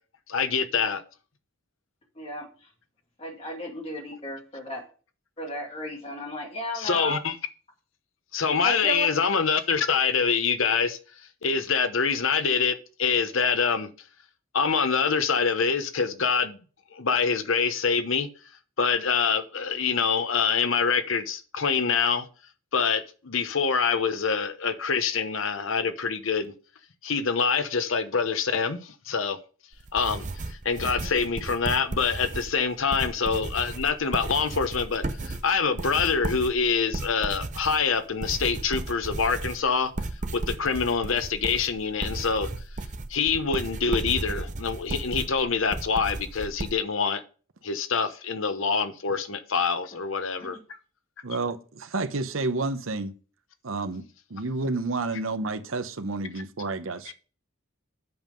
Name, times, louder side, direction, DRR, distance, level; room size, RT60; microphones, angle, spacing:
voice 1, 0.3-1.0 6.7-7.4 8.3-11.0 11.4-13.9 14.5-16.6 16.9-18.3 18.8-22.3 22.7-26.5 27.0-29.4 29.9-30.3 30.6-39.9 40.3-42.5 43.1-47.2 47.6-50.6, left 5 dB, 70° left, 0.9 m, -25 dB
voice 2, 2.2-2.7 3.2-4.8 5.4-7.2 8.6-9.1 31.0-31.2 50.4-50.6, equal, 30° left, 2.3 m, -34 dB
sound 1, 29.7-46.7, right 2 dB, 35° right, 0.6 m, -35 dB
voice 3, 51.2-53.1 53.6-54.0 54.3-57.1, right 3 dB, 75° right, 0.8 m, -30 dB
7.9 x 5.4 x 5.2 m
head